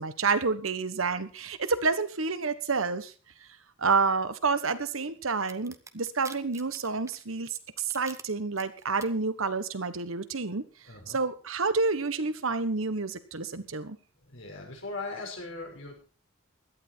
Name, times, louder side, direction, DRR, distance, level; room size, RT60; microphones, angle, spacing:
voice 1, 0.0-3.1 3.8-7.5 7.8-10.6 11.1-14.0, right 4 dB, 80° right, 12 dB, 1.2 m, -29 dB
sound 1, 5.5-8.2 8.6-9.1, right 5 dB, 15° right, 0.9 m, -46 dB
voice 2, 10.9-11.2 14.2-16.0, left 3 dB, 70° left, 1 dB, 6.0 m, -39 dB
17.0 x 12.0 x 4.6 m, 0.36 s
head